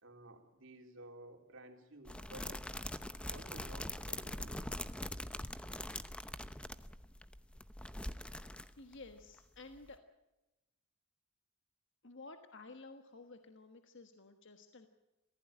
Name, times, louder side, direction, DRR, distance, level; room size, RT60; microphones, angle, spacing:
voice 1, 0.0-2.7 3.3-4.7, right 1 dB, 60° right, 4 dB, 3.5 m, -54 dB
sound 1, 2.0-9.1 9.4-9.5 9.7-9.9, left 1 dB, 5° left, 0.7 m, -43 dB
voice 2, 8.8-10.0 12.0-14.9, left 3 dB, 55° left, 7 dB, 1.4 m, -53 dB
24.0 x 16.0 x 8.9 m, 1.0 s
head